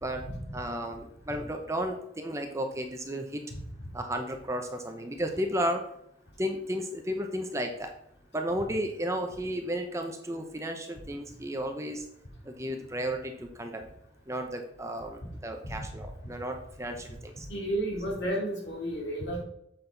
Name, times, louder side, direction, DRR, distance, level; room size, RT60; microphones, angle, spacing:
voice 1, 0.0-3.4 3.9-5.8 6.4-7.9 8.3-12.0 12.4-13.9 14.3-17.5, equal, 15° right, 4 dB, 0.8 m, -33 dB
voice 2, 17.5-19.4, right 1 dB, 65° left, -1 dB, 2.6 m, -32 dB
7.7 x 6.1 x 3.9 m, 0.76 s
head